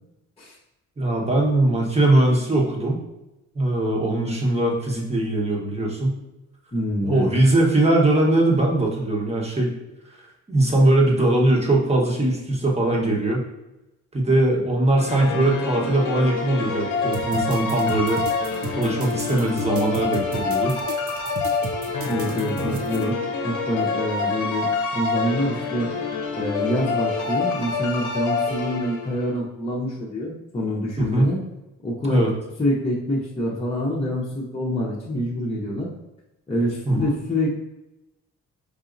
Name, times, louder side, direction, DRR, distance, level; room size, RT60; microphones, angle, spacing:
voice 1, 1.0-3.0 3.5-6.1 7.0-9.7 10.5-13.4 14.1-18.2 18.7-20.8 31.0-31.3 32.0-32.3 36.9-37.0, right 1 dB, 20° right, -2 dB, 1.1 m, -20 dB
voice 2, 6.7-7.3 22.1-23.1 23.4-25.9 26.3-31.4 31.8-32.2 32.6-35.9 36.5-37.6, left 1 dB, 20° left, -6 dB, 0.8 m, -26 dB
sound 1, 15.0-29.3, left 4 dB, 75° left, 0.7 m, -27 dB
sound 2, 17.1-23.0, right 5 dB, 50° right, 0.6 m, -34 dB
4.8 x 2.7 x 2.5 m, 0.94 s
cardioid pair, 90°, 30 cm